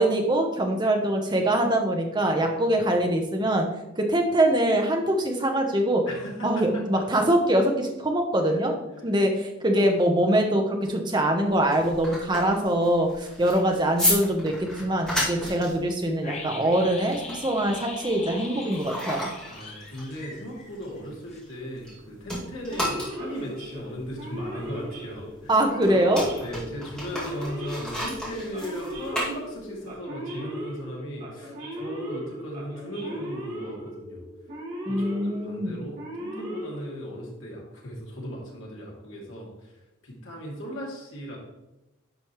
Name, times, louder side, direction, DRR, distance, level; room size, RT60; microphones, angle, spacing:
voice 1, 0.0-3.7 4.0-6.1 6.4-8.7 9.0-19.3 25.5-26.3 34.9-35.7, right 1 dB, 20° right, 2 dB, 0.9 m, -23 dB
voice 2, 6.1-7.0 8.4-8.6 19.5-25.7 26.4-34.3 34.9-41.4, equal, 60° left, -3 dB, 2.5 m, -37 dB
sound 1, 11.5-22.0 22.2-29.9, equal, 5° left, 2.3 m, -33 dB
sound 2, 16.2-21.0 21.3-21.4, left 3 dB, 30° left, 0.9 m, -41 dB
Male speech man speaking / Siren, 22.7-37.4, equal, 40° right, 3.0 m, -38 dB
10.5 x 5.1 x 3.1 m, 0.97 s
head